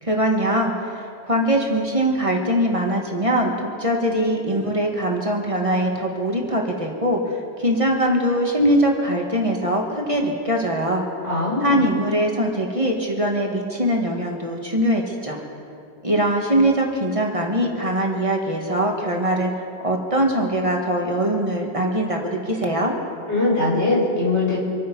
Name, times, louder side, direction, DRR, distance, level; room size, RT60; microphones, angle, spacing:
voice 1, 0.0-11.0 11.6-15.4 16.0-19.5 19.8-22.9, right 1 dB, 30° right, 0 dB, 1.8 m, -22 dB
voice 2, 11.2-11.8 23.3-24.6, left 2 dB, 90° left, -6 dB, 5.6 m, -21 dB
26.0 x 9.3 x 5.5 m, 2.5 s
omnidirectional pair, 1.1 m